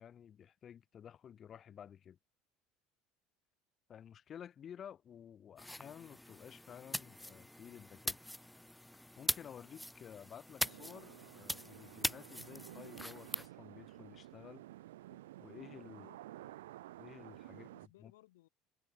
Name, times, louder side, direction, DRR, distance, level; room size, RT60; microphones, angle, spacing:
voice 1, 0.0-2.2 3.9-8.3 9.2-14.7 15.1-16.1 17.0-18.1, left 9 dB, 35° left, 0.8 m, -53 dB
sound 1, 5.6-13.5, left 1 dB, 5° left, 0.3 m, -42 dB
sound 2, 10.6-17.9, right 15 dB, 70° right, 0.7 m, -53 dB
voice 2, 15.9-16.8 17.5-18.5, left 17 dB, 65° left, 3.5 m, -65 dB
figure-of-eight pair, 65°, 0 cm